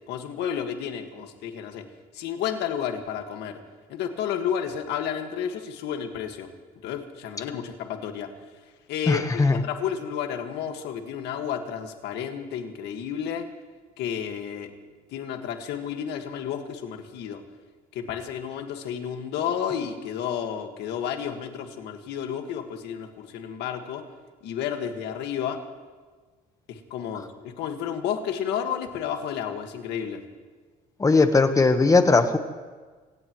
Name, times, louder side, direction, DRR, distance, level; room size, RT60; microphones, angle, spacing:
voice 1, 0.1-1.8 2.1-3.6 3.9-6.5 6.8-8.3 8.9-13.5 14.0-14.7 15.1-17.4 17.9-24.0 24.4-25.6 26.7-30.2, left 8 dB, 80° left, 5 dB, 1.8 m, -31 dB
voice 2, 9.1-9.6 31.0-32.4, left 3 dB, 20° left, 8 dB, 1.3 m, -19 dB
26.0 x 16.5 x 3.2 m, 1.4 s
cardioid pair, 110°, 17 cm